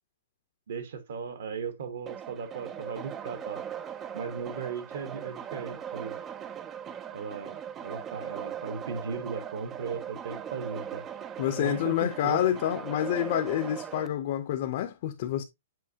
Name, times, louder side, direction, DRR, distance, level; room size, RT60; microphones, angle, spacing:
voice 1, 0.7-3.6 4.1-6.2 7.1-7.6 7.8-11.0 11.6-12.4, right 6 dB, 55° right, 1.1 m, -37 dB
sound 1, 2.1-14.1, right 9 dB, 10° right, 0.3 m, -39 dB
voice 2, 11.4-15.4, left 11 dB, 35° left, 0.6 m, -28 dB
7.6 x 5.3 x 2.8 m
hypercardioid pair, 180°, 0 cm